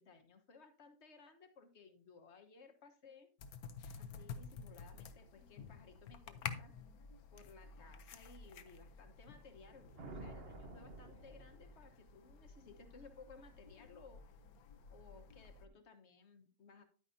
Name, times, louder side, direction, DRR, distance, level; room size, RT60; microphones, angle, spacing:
voice 1, 0.0-3.3 4.0-6.7 7.3-14.2 14.9-16.8, left 4 dB, 50° left, 7 dB, 1.4 m, -60 dB
sound 1, 3.4-15.7, left 6 dB, 70° left, 1.3 m, -51 dB
sound 2, 9.5-12.1, right 2 dB, 45° right, 1.2 m, -52 dB
10.5 x 9.3 x 2.7 m, 0.39 s
omnidirectional pair, 1.6 m